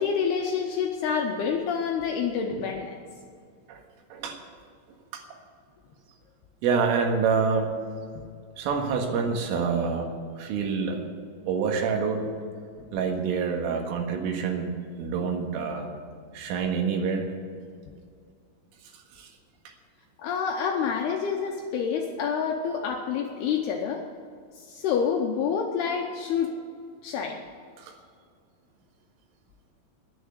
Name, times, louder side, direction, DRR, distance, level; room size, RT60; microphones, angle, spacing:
voice 1, 0.0-3.0 20.2-24.0 24.6-26.6 27.0-27.4, left 6 dB, 80° left, 2 dB, 2.4 m, -28 dB
voice 2, 6.6-7.7 8.6-10.1 10.3-11.0 11.5-12.3 12.9-14.7 15.0-15.9 16.3-17.3 19.1-19.3 27.8-27.9, right 5 dB, 85° right, 2 dB, 4.2 m, -27 dB
10.5 x 10.5 x 8.2 m, 2.2 s
omnidirectional pair, 5.6 m